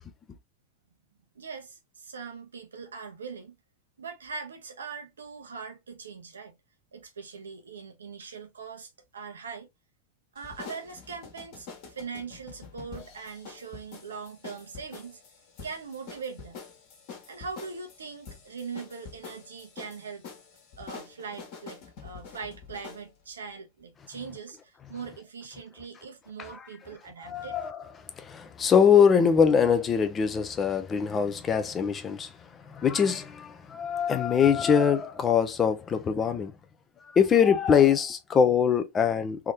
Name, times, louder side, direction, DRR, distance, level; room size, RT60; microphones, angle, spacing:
voice 1, 1.3-3.6 4.0-6.6 6.9-9.7 10.3-15.2 15.6-16.6 17.3-20.2 20.8-27.6, right 5 dB, 70° right, 1.0 m, -41 dB
sound 1, 10.4-23.1, left 5 dB, 45° left, 1.6 m, -46 dB
voice 2, 27.2-27.8 28.2-36.5 37.1-39.5, left 7 dB, 20° left, 0.7 m, -23 dB
3.6 x 3.1 x 2.9 m
figure-of-eight pair, 90°, 0 cm